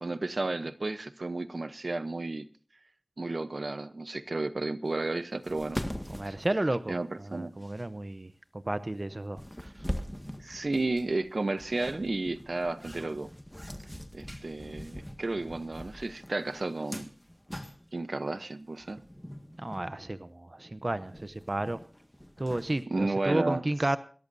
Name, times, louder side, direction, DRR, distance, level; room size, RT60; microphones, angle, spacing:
voice 1, 0.0-2.5 3.2-5.8 6.3-6.4 6.9-7.5 10.4-13.3 14.1-17.1 17.9-19.0 22.9-23.6, right 2 dB, 70° right, 12 dB, 0.8 m, -32 dB
sound 1, 5.1-5.2 5.4-7.2 7.6-7.8 8.9-9.0 9.4-18.1 18.8-19.9 20.3-20.4 20.7-22.8, equal, 10° left, 1.7 m, -42 dB
voice 2, 6.1-9.9 19.6-21.8 22.4-24.0, right 1 dB, 45° right, 12 dB, 0.7 m, -32 dB
27.5 x 13.5 x 2.7 m, 0.41 s
wide cardioid pair, 45°, 0 cm